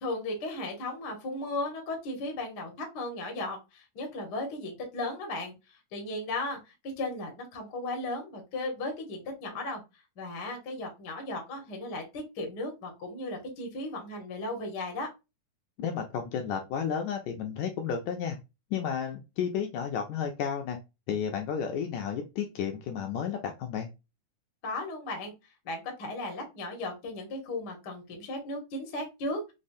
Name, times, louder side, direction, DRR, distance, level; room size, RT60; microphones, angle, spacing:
voice 1, 0.0-9.8 10.2-15.1 24.6-25.3 25.6-29.5, left 2 dB, 65° left, 2 dB, 1.0 m, -36 dB
voice 2, 15.8-18.4 18.7-20.8 21.1-23.9, left 7 dB, 80° left, 4 dB, 1.7 m, -32 dB
5.2 x 2.0 x 2.5 m, 0.25 s
omnidirectional pair, 3.6 m